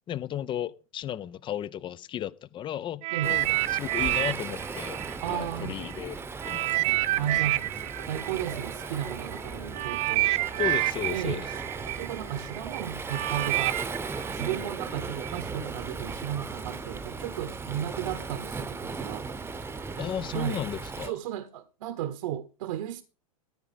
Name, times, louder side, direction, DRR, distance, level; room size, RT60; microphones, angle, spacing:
voice 1, 0.1-5.0 5.3-6.2 6.5-7.0 10.6-11.5 20.0-21.1, left 10 dB, 25° left, 0.6 m, -34 dB
sound 1, 3.0-5.9 6.4-15.4 16.1-16.3, right 18 dB, 35° right, 0.6 m, -29 dB
Waves surf, 3.2-21.1, right 4 dB, 10° right, 1.0 m, -37 dB
voice 2, 5.2-5.8 7.2-10.3 11.1-11.5 12.0-13.8 14.3-19.3 20.3-20.6 21.0-23.0, right 11 dB, 60° right, 1.1 m, -34 dB
sound 2, 7.8-13.0, right 11 dB, 80° right, 0.6 m, -48 dB
14.0 x 4.9 x 7.6 m
hypercardioid pair, 100°, 19 cm